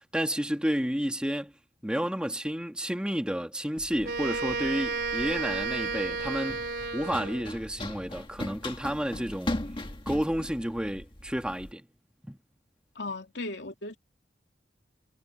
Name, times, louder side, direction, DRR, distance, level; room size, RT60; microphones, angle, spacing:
voice 1, 0.1-1.5 1.8-6.7 6.9-9.6 10.1-11.9 12.2-12.4, equal, 5° right, 1.7 m, -31 dB
Run, 3.8-11.7, left 1 dB, 30° left, 1.9 m, -39 dB
Wind instrument woodwind instrument, 4.0-7.6, right 4 dB, 60° right, 3.7 m, -32 dB
voice 2, 12.9-14.0, left 2 dB, 70° left, 2.9 m, -36 dB
head